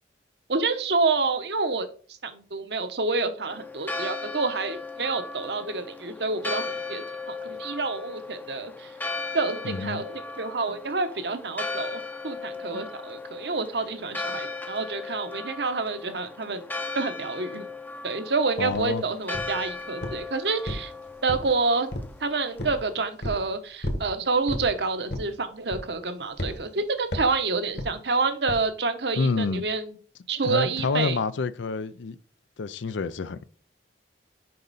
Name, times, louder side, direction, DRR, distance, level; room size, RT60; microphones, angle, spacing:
voice 1, 0.5-1.9 2.2-8.9 9.3-16.6 16.9-17.7 18.0-20.9 21.2-21.9 22.2-30.0 30.3-31.2, right 3 dB, 65° right, 1.0 m, -28 dB
Church bell, 3.5-22.9, left 3 dB, 10° left, 0.5 m, -37 dB
voice 2, 9.6-10.0 12.7-12.8 18.6-19.0 29.1-29.6 30.4-32.2 32.6-33.4, left 4 dB, 90° left, 0.5 m, -28 dB
sound 1, 18.7-18.9 19.3-19.7 20.0-20.3 20.7-21.6 21.9-22.2 22.6-22.8 23.2-23.4 23.8-24.1 24.5-24.7 25.1-25.4 25.7-26.0 26.4-26.6 27.1-27.4 27.8-28.0 28.5-28.6, left 1 dB, 65° left, 1.6 m, -32 dB
6.6 x 5.4 x 4.1 m
head